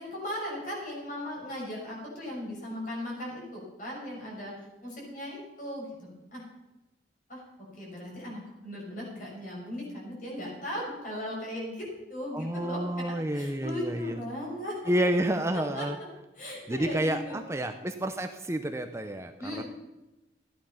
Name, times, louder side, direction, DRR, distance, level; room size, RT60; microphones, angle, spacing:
voice 1, 0.0-6.4 7.3-14.9 15.5-16.1 16.3-17.4 19.4-19.6, left 1 dB, 50° left, -2 dB, 6.3 m, -38 dB
voice 2, 12.3-14.2 14.9-16.0 16.7-19.6, right 1 dB, 15° right, 6 dB, 0.7 m, -30 dB
14.5 x 11.0 x 5.7 m, 1.0 s
head